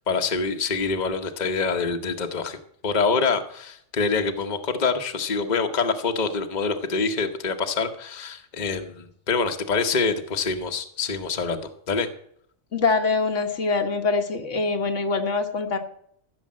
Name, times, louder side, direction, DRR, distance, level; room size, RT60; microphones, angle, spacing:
voice 1, 0.1-2.6 2.8-12.1, left 4 dB, 40° left, 6 dB, 1.2 m, -25 dB
voice 2, 12.7-15.8, left 4 dB, 85° left, 4 dB, 1.8 m, -24 dB
15.0 x 7.1 x 7.5 m, 0.66 s
omnidirectional pair, 1.2 m